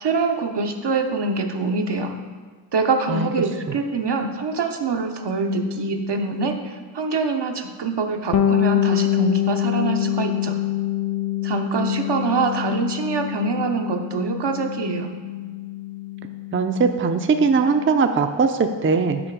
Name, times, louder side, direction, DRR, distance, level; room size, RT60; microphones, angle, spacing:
voice 1, 0.0-2.1 2.7-10.6 11.4-15.1, right 4 dB, 70° right, 4 dB, 0.8 m, -24 dB
Bass guitar, 8.3-17.9, left 11 dB, 40° left, 0.4 m, -25 dB
voice 2, 16.5-19.2, right 5 dB, 30° right, 7 dB, 0.5 m, -20 dB
6.3 x 4.8 x 4.6 m, 1.5 s
cardioid pair, 40°, 43 cm